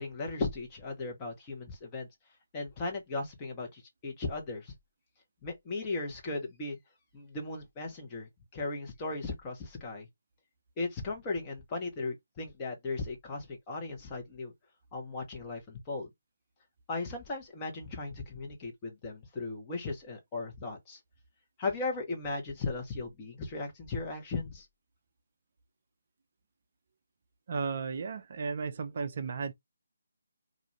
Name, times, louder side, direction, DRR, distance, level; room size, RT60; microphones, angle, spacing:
voice 1, 0.0-2.1 2.5-4.7 5.4-6.8 7.1-10.1 10.8-14.5 14.9-16.1 16.9-21.0 21.6-24.7, left 3 dB, 20° left, 0.9 m, -37 dB
voice 2, 27.5-29.5, right 5 dB, 45° right, 0.4 m, -34 dB
2.5 x 2.3 x 3.1 m
figure-of-eight pair, 150°, 0 cm